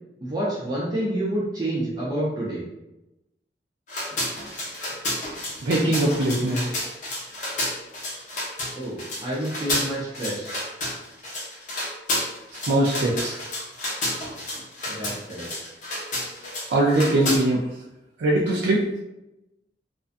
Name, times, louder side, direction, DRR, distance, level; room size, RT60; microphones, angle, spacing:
voice 1, 0.2-2.6 8.8-10.6 14.9-15.5, right 1 dB, 25° right, -6 dB, 0.5 m, -28 dB
sound 1, 3.9-17.4, left 1 dB, 45° left, 0.6 m, -30 dB
voice 2, 5.6-6.6 12.6-13.4 16.7-17.6 18.2-18.8, right 1 dB, 75° right, -5 dB, 0.4 m, -21 dB
2.5 x 2.2 x 2.5 m, 0.92 s
head